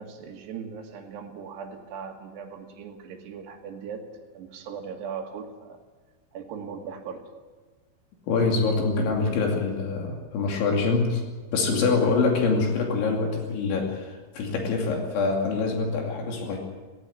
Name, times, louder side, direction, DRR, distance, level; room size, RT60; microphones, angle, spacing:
voice 1, 0.0-4.1 4.3-5.8 6.3-7.3, right 6 dB, 65° right, 2 dB, 4.1 m, -39 dB
voice 2, 8.3-11.2 11.5-16.6, left 4 dB, 75° left, 1 dB, 4.9 m, -25 dB
17.5 x 17.0 x 9.9 m, 1.3 s
omnidirectional pair, 5.5 m